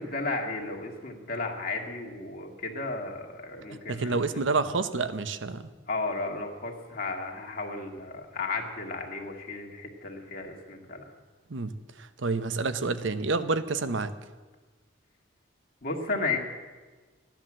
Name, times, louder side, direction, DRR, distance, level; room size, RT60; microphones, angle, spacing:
voice 1, 0.0-4.5 5.9-11.0 15.8-16.4, left 3 dB, 50° left, 1 dB, 1.9 m, -34 dB
voice 2, 3.9-5.6 11.5-11.7 12.0-14.1, right 3 dB, 70° right, 12 dB, 0.8 m, -28 dB
14.5 x 10.5 x 7.4 m, 1.3 s
head